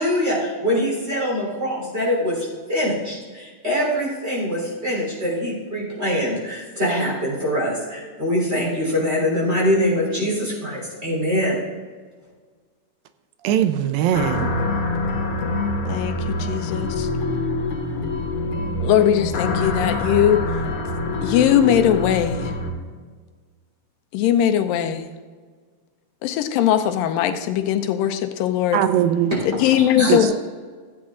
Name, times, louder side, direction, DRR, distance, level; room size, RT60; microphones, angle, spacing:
voice 1, 0.0-11.6 29.3-29.4 30.0-30.3, equal, 20° right, -5 dB, 3.5 m, -23 dB
voice 2, 13.4-14.5 28.7-29.3 30.1-30.3, right 10 dB, 90° right, 10 dB, 2.4 m, -20 dB
sound 1, 14.1-22.7, left 2 dB, 65° left, 2.6 m, -25 dB
voice 3, 15.9-17.1 18.8-20.4 21.2-22.5 24.1-25.0 26.2-28.8 29.5-30.3, left 10 dB, 85° left, 7 dB, 2.4 m, -20 dB
15.0 x 8.7 x 3.7 m, 1.5 s
omnidirectional pair, 3.9 m